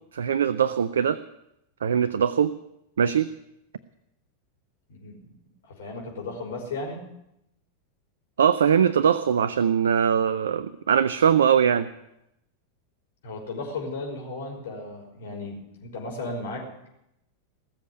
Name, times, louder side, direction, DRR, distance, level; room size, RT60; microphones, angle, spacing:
voice 1, 0.1-1.2 1.8-2.5 3.0-3.3 8.4-11.9, right 8 dB, 65° right, 16 dB, 0.5 m, -21 dB
voice 2, 5.7-7.0 13.2-16.9, left 2 dB, 60° left, 0 dB, 5.5 m, -35 dB
19.5 x 7.4 x 9.8 m, 0.84 s
figure-of-eight pair, 90°, 0 cm